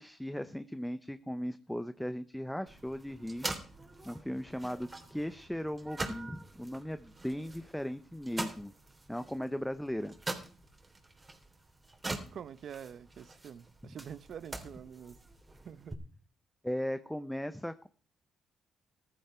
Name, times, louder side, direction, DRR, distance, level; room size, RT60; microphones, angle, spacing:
voice 1, 0.0-3.5 4.0-8.7 9.1-10.1 13.8-13.9 16.6-17.9, equal, 5° left, 0.9 m, -37 dB
sound 1, 2.7-15.9, right 2 dB, 20° right, 3.4 m, -44 dB
voice 2, 12.3-15.2 15.6-16.0, right 8 dB, 60° right, 1.0 m, -46 dB
15.0 x 12.5 x 4.5 m
cardioid pair, 90°, 0 cm